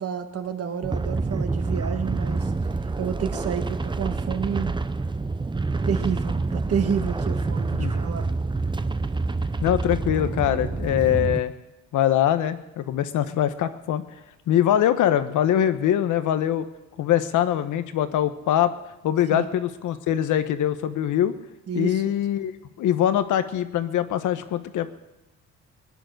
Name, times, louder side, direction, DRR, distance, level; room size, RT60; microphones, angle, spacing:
voice 1, 0.0-2.5 3.0-4.8 5.9-8.3 19.3-19.5 21.7-22.0, right 7 dB, 50° right, 7 dB, 1.7 m, -29 dB
sound 1, 0.8-11.4, right 3 dB, 15° right, 0.7 m, -27 dB
voice 2, 9.6-11.5 11.9-14.0 14.5-16.6 17.0-18.7 19.0-21.3 21.7-22.5 22.8-24.9, left 11 dB, 80° left, 11 dB, 1.2 m, -23 dB
20.5 x 10.5 x 6.6 m, 1.0 s
cardioid pair, 90°, 30 cm